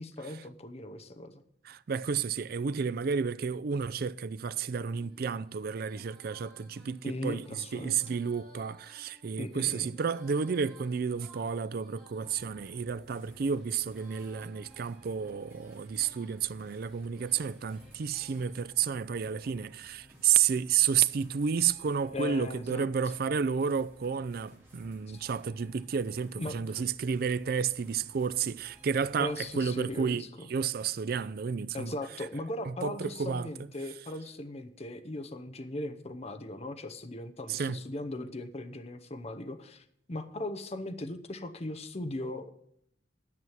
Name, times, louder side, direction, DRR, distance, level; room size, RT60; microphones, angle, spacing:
voice 1, 0.0-1.4 7.0-8.1 9.4-9.9 22.1-22.9 25.1-25.2 26.4-26.8 29.2-30.5 31.7-42.5, left 2 dB, 35° left, 0.8 m, -38 dB
voice 2, 1.6-30.2 30.5-31.9 32.7-33.5 37.5-37.8, right 6 dB, 55° right, 0.4 m, -31 dB
Female singing, 4.9-18.5, right 2 dB, ahead, 4.4 m, -59 dB
sound 1, 12.2-30.0, right 1 dB, 15° right, 3.8 m, -57 dB
11.0 x 6.2 x 7.2 m
head